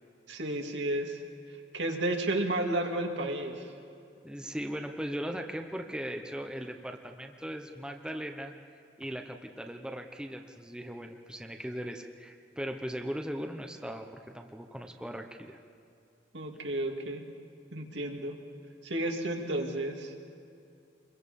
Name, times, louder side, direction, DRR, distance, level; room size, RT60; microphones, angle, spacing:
voice 1, 0.3-1.2 1.7-3.6 16.3-17.2 17.7-18.4 18.8-20.1, right 1 dB, 75° right, 2 dB, 2.5 m, -32 dB
voice 2, 4.2-8.5 9.0-14.1 14.3-15.6, equal, 5° right, 4 dB, 0.9 m, -38 dB
27.5 x 22.5 x 5.4 m, 2.5 s
head